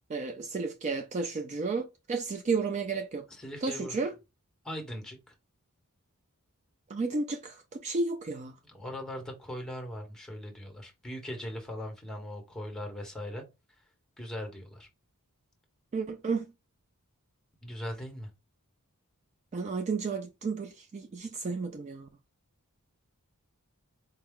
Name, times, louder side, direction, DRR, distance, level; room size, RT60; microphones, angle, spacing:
voice 1, 0.1-3.3 3.6-4.1 6.9-8.6 15.9-16.5 19.5-22.1, right 4 dB, 30° right, 0.3 m, -32 dB
voice 2, 3.3-4.0 4.6-5.3 8.6-13.4 14.2-14.9 17.6-18.3, equal, 5° left, 1.1 m, -40 dB
4.5 x 2.3 x 3.5 m
head